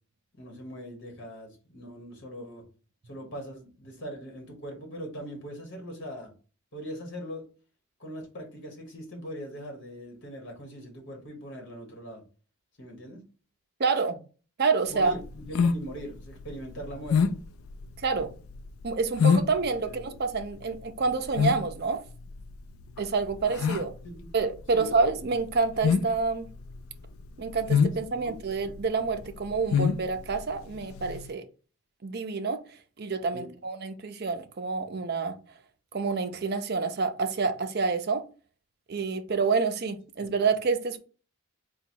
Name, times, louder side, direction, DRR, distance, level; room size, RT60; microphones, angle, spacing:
voice 1, 0.3-2.7 3.1-6.3 6.7-7.4 8.0-12.2 12.8-13.2 14.9-17.4 19.8-20.0 23.6-23.7 24.0-24.3 24.7-24.9 27.8-28.3 33.3-33.5, equal, 55° left, 1.3 m, -41 dB
voice 2, 13.8-14.2 14.6-15.1 18.0-18.3 18.8-22.0 23.0-23.9 24.3-26.5 27.4-31.4 32.0-32.6 33.0-35.3 35.9-38.2 38.9-41.0, right 4 dB, 45° right, 0.5 m, -28 dB
sound 1, 14.9-31.3, left 6 dB, 70° left, 0.3 m, -28 dB
3.8 x 2.3 x 4.5 m
head